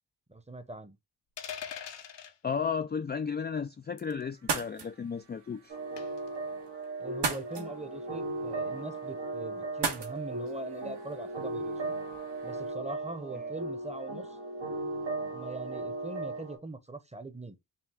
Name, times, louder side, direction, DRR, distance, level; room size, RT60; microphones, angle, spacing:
voice 1, 0.3-1.0 7.0-11.9 12.4-14.4 15.3-17.6, right 2 dB, 15° right, 0.9 m, -42 dB
sound 1, 1.4-2.3 4.0-4.2 6.0-6.3, left 8 dB, 75° left, 0.8 m, -41 dB
voice 2, 2.4-5.7, left 6 dB, 25° left, 0.4 m, -33 dB
sound 2, 4.3-12.7, right 5 dB, 70° right, 1.3 m, -39 dB
sound 3, 5.7-16.6, right 2 dB, 85° right, 2.9 m, -37 dB
5.6 x 2.3 x 3.5 m
cardioid pair, 45°, 43 cm